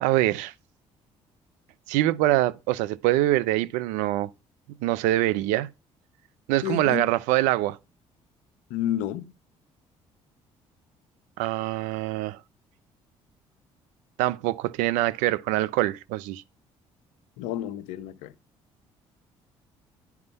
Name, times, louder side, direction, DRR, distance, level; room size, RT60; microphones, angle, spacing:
voice 1, 0.0-0.5 1.9-4.3 4.8-5.7 6.5-7.8 11.4-12.4 14.2-16.4, right 15 dB, 85° right, 0.6 m, -24 dB
voice 2, 6.6-7.1 8.7-9.3 17.4-18.3, left 11 dB, 85° left, 0.9 m, -30 dB
10.5 x 6.0 x 5.4 m
supercardioid pair, 70°, 13 cm